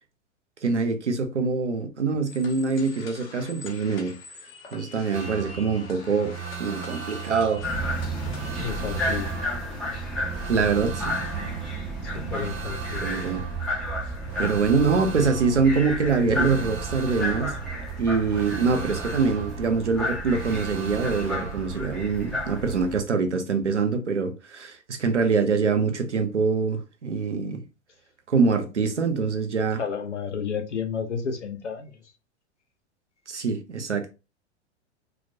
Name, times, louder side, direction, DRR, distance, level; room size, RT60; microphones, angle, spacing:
voice 1, 0.6-4.1 4.7-7.6 10.5-11.1 13.0-13.5 14.4-17.6 18.0-27.6 28.3-29.8 33.3-34.1, right 4 dB, 85° right, 0.5 m, -24 dB
sound 1, 2.2-8.6, left 4 dB, 55° left, 0.8 m, -45 dB
sound 2, 5.1-21.8, right 7 dB, 35° right, 0.7 m, -37 dB
sound 3, 7.6-23.0, equal, ahead, 0.4 m, -32 dB
voice 2, 8.6-9.3 12.0-13.0 29.8-32.0, left 6 dB, 80° left, 0.6 m, -31 dB
2.3 x 2.1 x 2.6 m
figure-of-eight pair, 95°, 35 cm